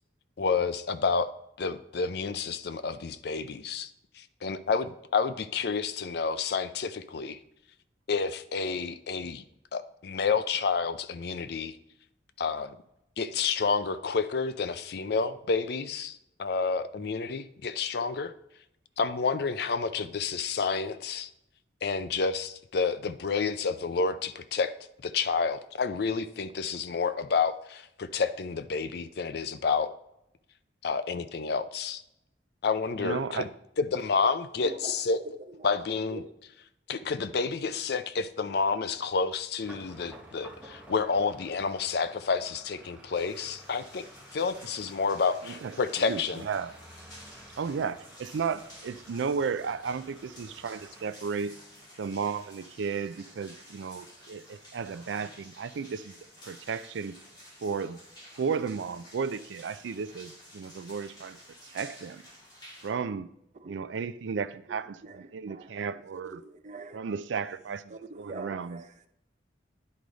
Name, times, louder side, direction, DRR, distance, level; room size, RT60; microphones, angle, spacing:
voice 1, 0.4-1.3 1.6-3.9 4.2-7.4 8.1-9.4 9.7-11.8 12.4-12.8 13.2-18.3 19.0-21.3 21.8-24.7 25.0-29.9 30.8-32.0 32.6-33.5 33.8-35.2 35.6-36.2 36.9-44.1 44.3-46.4, left 5 dB, 60° left, 0.5 m, -29 dB
voice 2, 33.0-33.5 45.4-46.7 47.6-51.6 52.0-56.2 56.4-57.2 57.6-58.0 58.4-62.2 62.8-63.3 63.6-66.4 66.9-68.8, right 5 dB, 90° right, 0.4 m, -34 dB
voice 3, 34.6-36.3 63.6-63.8 65.0-65.8 66.3-67.0 67.9-68.9, right 2 dB, 40° right, 0.7 m, -44 dB
sound 1, 39.6-51.1, right 1 dB, 5° right, 1.1 m, -52 dB
sound 2, 43.1-62.9, equal, 25° left, 2.3 m, -52 dB
10.5 x 4.9 x 4.0 m
head